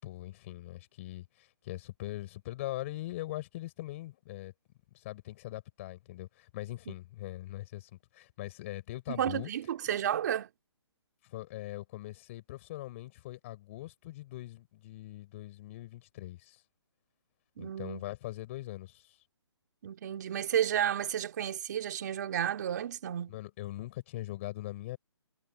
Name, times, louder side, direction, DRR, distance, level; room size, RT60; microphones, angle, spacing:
voice 1, 0.0-4.5 4.9-9.5 11.2-16.6 17.6-19.2 23.3-25.0, left 16 dB, 30° left, 4.9 m, -41 dB
voice 2, 9.1-10.5 17.6-18.0 19.8-23.4, right 10 dB, 40° right, 2.2 m, -32 dB
hypercardioid pair, 160°, 14 cm